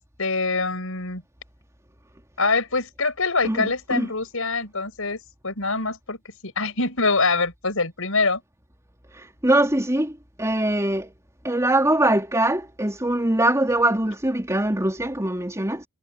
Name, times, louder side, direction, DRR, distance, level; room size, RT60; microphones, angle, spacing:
voice 1, 0.2-1.2 2.4-6.2 6.4-8.4, left 3 dB, 65° left, 7.7 m, -24 dB
voice 2, 3.4-4.1 9.1-10.1 10.4-11.1 11.4-15.9, right 1 dB, 15° right, 3.7 m, -22 dB
head